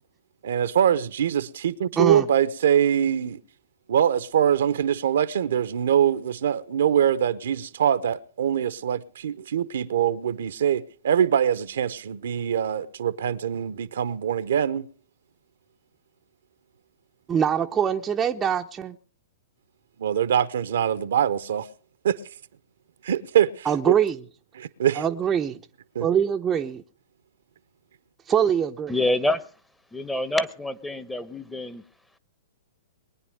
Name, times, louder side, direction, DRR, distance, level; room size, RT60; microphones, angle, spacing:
voice 1, 0.4-3.4 3.9-14.9 20.0-21.7 22.0-22.2 23.0-23.9 24.5-25.1 25.9-26.1, right 9 dB, 70° right, 0.9 m, -23 dB
voice 2, 2.0-2.3 17.3-19.0 23.6-24.2 25.0-25.6 26.0-26.8 28.3-28.9, right 8 dB, 20° right, 0.7 m, -23 dB
voice 3, 28.9-29.4 29.9-31.8, left 1 dB, 5° left, 1.0 m, -26 dB
22.0 x 9.7 x 5.0 m
hypercardioid pair, 115°, 0 cm